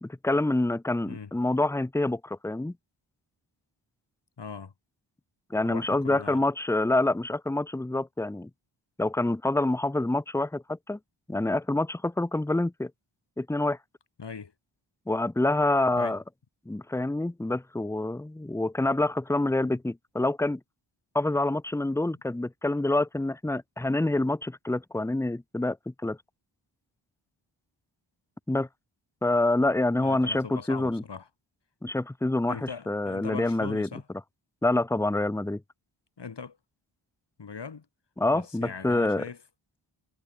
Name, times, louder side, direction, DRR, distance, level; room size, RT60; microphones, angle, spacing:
voice 1, 0.0-2.7 5.5-8.5 9.0-11.0 11.3-12.9 13.4-13.8 15.1-16.2 16.7-20.6 21.1-26.2 28.5-28.7 29.2-31.0 31.8-33.9 34.6-35.6 38.2-39.3, left 2 dB, 5° left, 0.6 m, -27 dB
voice 2, 4.4-4.7 5.6-6.4 14.2-14.5 15.9-16.2 30.0-31.3 32.5-34.0 36.2-36.6 37.4-37.8 38.3-39.4, left 5 dB, 60° left, 3.3 m, -40 dB
wide cardioid pair, 70°, 48 cm